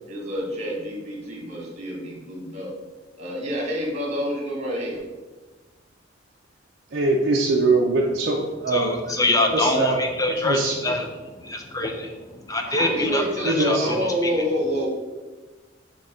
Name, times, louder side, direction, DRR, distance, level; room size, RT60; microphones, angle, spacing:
voice 1, 0.1-2.7 3.2-5.0 12.7-14.9, equal, 35° right, -1 dB, 1.6 m, -28 dB
voice 2, 6.9-8.9 9.5-10.0 10.4-10.7 13.5-13.9, right 2 dB, 55° right, -2 dB, 0.5 m, -22 dB
voice 3, 8.7-14.3, left 2 dB, 20° left, 4 dB, 0.5 m, -25 dB
6.6 x 2.9 x 4.9 m, 1.2 s
head